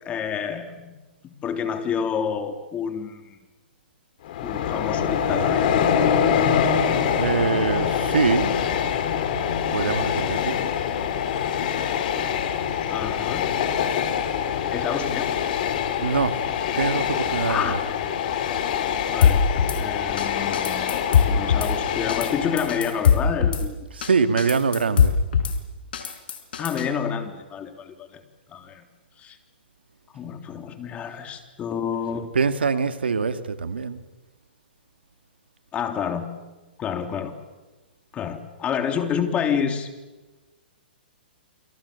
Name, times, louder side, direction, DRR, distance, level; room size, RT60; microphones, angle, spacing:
voice 1, 0.0-1.0 1.2-3.4 4.4-5.7 12.9-13.5 14.7-15.3 17.5-17.8 19.1-19.4 19.8-23.9 26.6-28.2 28.5-28.8 29.2-29.4 30.1-32.3 35.7-36.3 36.8-37.3 38.1-39.9, left 7 dB, 20° left, 3.5 m, -29 dB
Train, 4.2-23.2, left 8 dB, 55° left, 3.8 m, -25 dB
voice 2, 7.1-8.6 9.7-10.6 16.0-16.4 16.7-17.8 23.9-25.1 32.3-34.0, right 5 dB, 90° right, 2.2 m, -24 dB
Drum kit / Snare drum, 19.2-19.8 20.2-20.3 20.5-21.7 22.1-22.3 22.6-23.6 24.0-24.1 24.4-25.5 25.9-26.9, left 7 dB, 70° left, 5.2 m, -20 dB
28.0 x 27.5 x 7.1 m
hypercardioid pair, 130°, 5 cm